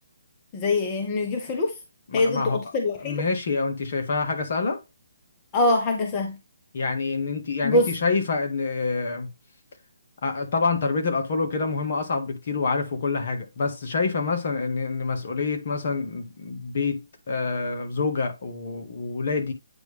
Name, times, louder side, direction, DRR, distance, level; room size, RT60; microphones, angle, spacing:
voice 1, 0.5-1.7 2.1-3.2 5.5-6.4 7.6-7.9, left 2 dB, 25° left, 1.1 m, -24 dB
voice 2, 2.1-2.6 3.0-4.8 6.7-9.3 10.2-19.5, left 4 dB, 55° left, 1.8 m, -27 dB
8.9 x 3.3 x 3.4 m
figure-of-eight pair, 145°, 0 cm